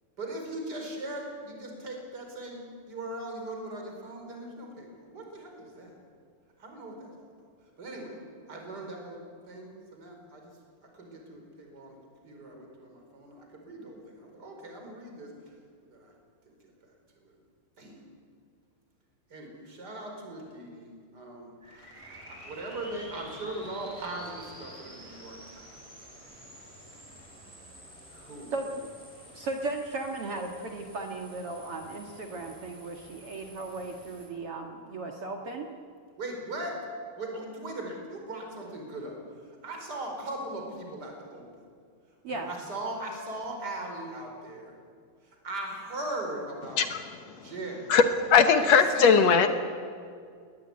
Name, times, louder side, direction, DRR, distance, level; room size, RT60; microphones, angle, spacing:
voice 1, 0.2-5.9 6.6-7.1 7.8-8.2 8.5-9.2 9.4-10.5 10.9-12.0 12.2-15.3 15.9-16.1 16.5-16.6 17.8-18.0 19.3-27.0 28.1-28.5 36.2-36.8 37.2-39.2 39.6-41.5 42.3-44.7 45.2-46.9 47.3-47.9 48.5-49.2, right 2 dB, 25° right, 2 dB, 5.0 m, -39 dB
sound 1, 21.6-34.3, right 1 dB, 5° right, 4.6 m, -50 dB
voice 2, 28.5-28.9 29.3-35.7 42.2-42.5, right 2 dB, 50° right, 3 dB, 1.9 m, -36 dB
voice 3, 46.8-47.5 47.9-49.5, left 6 dB, 65° left, 8 dB, 1.8 m, -21 dB
20.5 x 20.0 x 9.7 m, 2.2 s
omnidirectional pair, 4.4 m